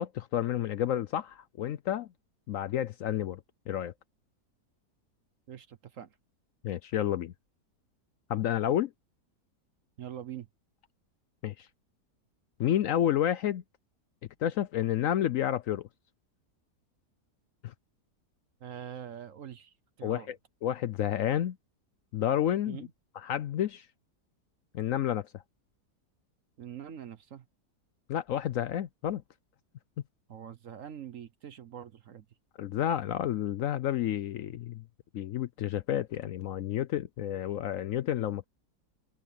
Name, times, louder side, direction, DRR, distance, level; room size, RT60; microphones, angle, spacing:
voice 1, 0.0-2.1 2.5-3.4 3.7-3.9 6.6-7.3 8.3-8.9 11.4-11.7 12.6-13.6 14.4-15.9 17.6-17.7 20.0-20.4 20.6-21.6 22.1-22.8 23.2-23.9 24.7-25.3 28.1-29.2 32.6-34.8 35.1-38.4, left 11 dB, 65° left, 0.8 m, -30 dB
voice 2, 5.5-6.2 10.0-10.5 18.6-20.3 22.7-22.9 26.6-27.5 30.3-32.3, right 9 dB, 55° right, 1.2 m, -44 dB
open air
omnidirectional pair, 1.7 m